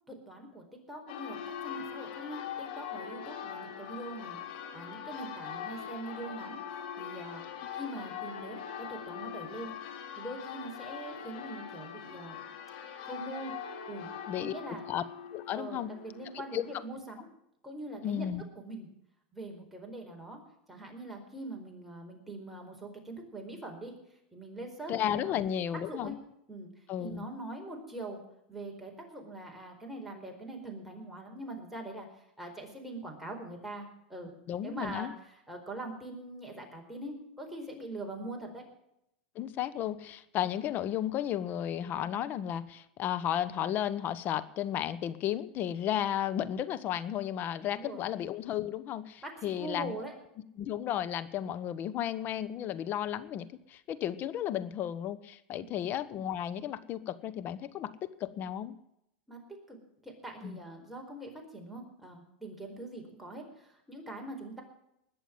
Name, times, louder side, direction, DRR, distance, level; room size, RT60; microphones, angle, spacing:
voice 1, 0.1-1.4 1.6-4.4 4.7-6.6 7.0-7.4 7.7-9.7 10.2-12.4 13.1-13.5 13.9-14.1 14.4-14.8 15.5-17.3 17.6-18.3 18.6-18.9 19.3-20.4 20.7-23.9 24.3-25.4 25.9-26.2 26.5-26.7 27.0-28.2 28.5-32.1 32.4-34.3 34.6-35.1 35.5-38.6 47.6-48.1 49.2-50.1 55.5-55.8 59.3-59.8 60.0-64.6, right 2 dB, 5° right, 0 dB, 4.5 m, -43 dB
Church bell, 1.1-16.8, left 8 dB, 70° left, 3.0 m, -42 dB
voice 2, 15.3-15.9 16.3-16.6 18.0-18.4 24.9-26.1 26.9-27.2 34.5-35.1 39.3-49.9 50.6-58.7 60.4-60.6, left 10 dB, 40° left, 14 dB, 1.1 m, -33 dB
20.5 x 7.1 x 7.6 m, 0.79 s
supercardioid pair, 125°, 5 cm